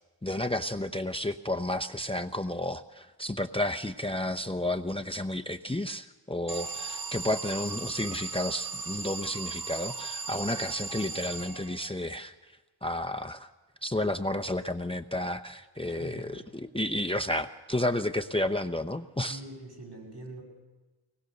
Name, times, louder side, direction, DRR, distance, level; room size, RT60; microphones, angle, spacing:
voice 1, 0.2-12.3 12.8-13.5 13.8-19.4, left 1 dB, 15° left, 8 dB, 0.7 m, -31 dB
Alarm, 6.5-12.0, right 4 dB, 50° right, 1.1 m, -37 dB
voice 2, 15.9-16.4 19.3-20.4, right 2 dB, 65° right, -2 dB, 7.7 m, -44 dB
23.0 x 19.5 x 6.7 m, 1.2 s
wide cardioid pair, 45°, 44 cm